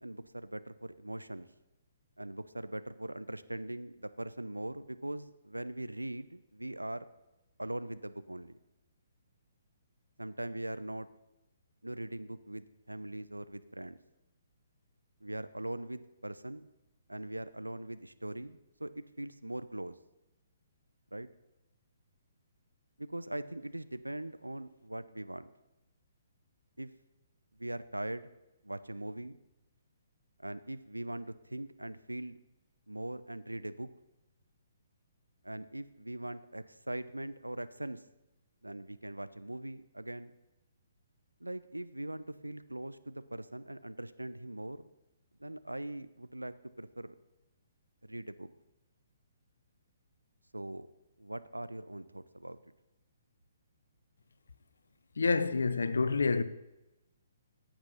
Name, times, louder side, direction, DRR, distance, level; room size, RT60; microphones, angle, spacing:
voice 1, 0.0-1.5 2.2-7.1 7.6-8.6 10.2-11.1 11.8-14.0 15.2-16.7 17.1-20.0 21.1-21.3 23.0-25.5 26.8-26.9 27.6-28.3 28.6-29.4 30.4-32.4 32.9-33.9 35.4-38.0 38.6-40.3 41.4-44.8 45.4-47.2 48.0-48.5 50.5-50.9 51.2-52.6, right 1 dB, 85° right, 0.7 m, -41 dB
voice 2, 55.2-56.4, left 4 dB, 65° left, 0.8 m, -28 dB
15.0 x 8.9 x 5.6 m
figure-of-eight pair, 130°, 0 cm